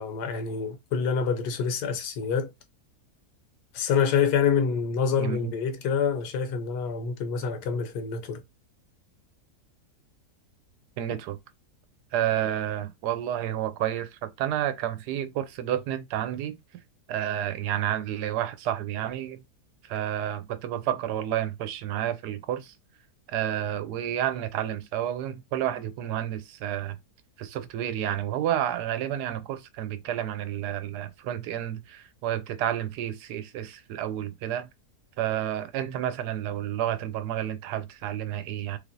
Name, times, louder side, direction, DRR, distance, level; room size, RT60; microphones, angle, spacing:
voice 1, 0.0-2.5 3.7-8.4, left 6 dB, 90° left, 1.3 m, -26 dB
voice 2, 5.2-5.5 11.0-11.4 12.1-16.6 17.1-19.4 19.8-22.7 23.3-27.0 27.4-34.7 35.2-38.8, right 11 dB, 85° right, 1.2 m, -30 dB
3.3 x 2.9 x 2.5 m
omnidirectional pair, 1.7 m